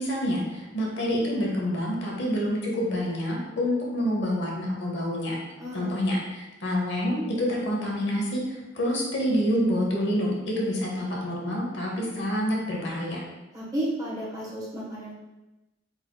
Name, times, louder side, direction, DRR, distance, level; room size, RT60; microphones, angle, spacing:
voice 1, 0.0-5.4 5.7-13.2, equal, 60° left, -2 dB, 0.9 m, -27 dB
voice 2, 5.6-6.0 13.5-15.2, right 1 dB, 20° right, -6 dB, 1.2 m, -33 dB
4.5 x 4.0 x 2.3 m, 1.0 s
head